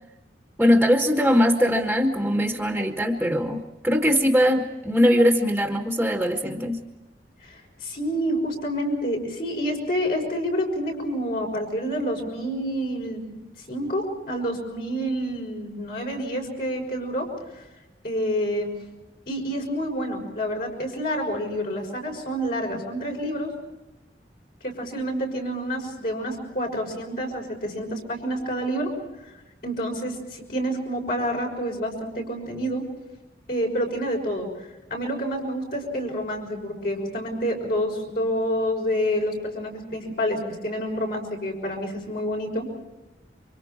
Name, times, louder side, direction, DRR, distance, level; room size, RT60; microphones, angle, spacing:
voice 1, 0.6-6.8, equal, 5° right, 4 dB, 1.5 m, -21 dB
voice 2, 7.4-13.3 13.7-17.3 17.5-17.6 18.0-18.7 19.3-23.5 24.6-28.9 29.2-29.3 29.6-32.8 33.5-42.7, equal, 55° left, 0 dB, 6.0 m, -28 dB
28.5 x 25.5 x 4.4 m, 1.0 s
head